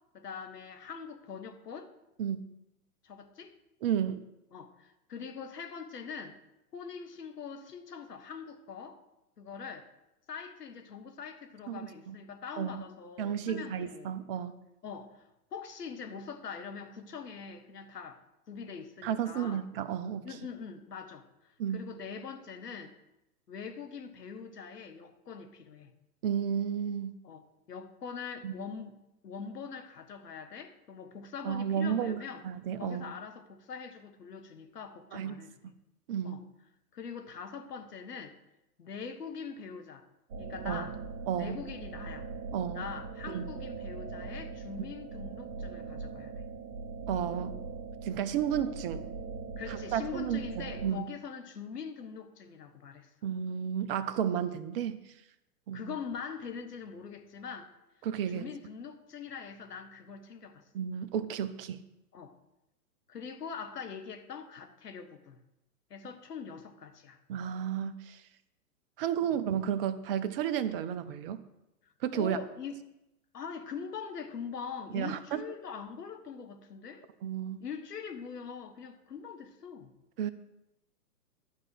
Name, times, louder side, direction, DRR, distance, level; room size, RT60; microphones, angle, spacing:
voice 1, 0.1-1.9 3.0-3.6 4.5-6.4 6.7-9.0 9.4-9.9 10.3-14.1 14.8-18.2 18.5-19.6 20.2-22.9 23.5-25.9 27.2-32.4 32.8-35.7 36.2-36.5 36.9-38.3 38.8-40.0 40.4-41.0 41.4-42.3 42.7-46.4 49.6-53.1 55.7-57.7 58.3-60.6 62.1-62.4 63.1-65.4 65.9-67.2 69.2-69.4 72.1-72.8 73.3-77.1 77.6-79.9, left 6 dB, 75° left, 7 dB, 1.5 m, -43 dB
voice 2, 3.8-4.2 11.7-11.8 12.1-12.2 12.6-12.8 13.2-14.6 19.0-20.3 21.6-21.8 26.2-27.1 28.4-28.6 31.4-33.1 35.1-35.3 36.1-36.4 40.7-40.9 41.3-41.6 42.5-42.9 43.3-43.5 47.1-47.6 48.0-49.1 49.7-51.1 53.2-55.0 55.7-55.9 58.0-58.5 60.7-61.8 67.3-68.2 69.0-71.4 72.0-72.4 74.9-75.4 77.2-77.6 80.2-80.3, right 9 dB, 35° right, 11 dB, 0.8 m, -32 dB
sound 1, 40.3-50.9, right 4 dB, 60° right, 1.5 m, -41 dB
11.5 x 4.6 x 7.8 m, 0.90 s
hypercardioid pair, 120°, 48 cm